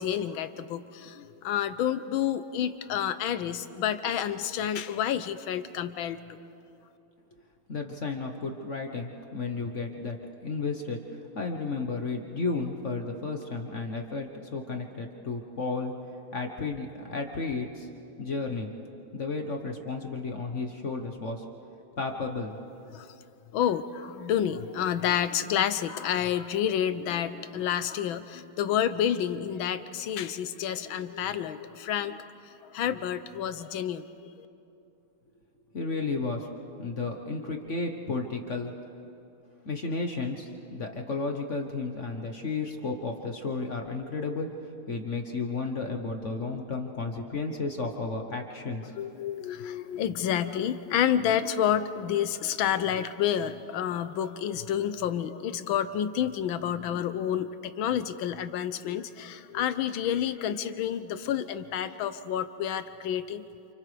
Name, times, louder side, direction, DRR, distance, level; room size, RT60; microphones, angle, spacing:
voice 1, 0.0-6.4 22.9-23.1 23.5-32.3 32.6-34.5 49.0-63.4, left 9 dB, 75° left, 12 dB, 1.4 m, -29 dB
voice 2, 7.7-10.2 10.4-11.0 11.3-15.9 16.3-17.9 18.2-18.7 19.1-21.4 22.0-22.6 35.7-36.5 36.8-38.7 39.6-44.5 44.9-48.8, left 3 dB, 45° left, 3 dB, 1.2 m, -33 dB
29.0 x 28.5 x 3.4 m, 2.8 s
omnidirectional pair, 2.3 m